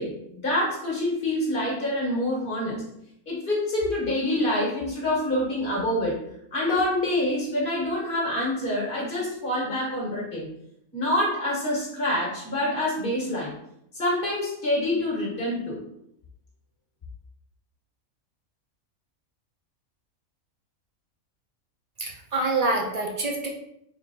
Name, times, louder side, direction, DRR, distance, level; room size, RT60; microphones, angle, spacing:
voice 1, 0.0-2.9 3.3-6.2 6.5-10.5 10.9-13.5 13.9-15.8, left 1 dB, 40° left, -4 dB, 1.6 m, -26 dB
voice 2, 22.0-23.5, right 2 dB, 50° right, 1 dB, 0.4 m, -26 dB
4.2 x 3.9 x 2.8 m, 0.75 s
omnidirectional pair, 1.5 m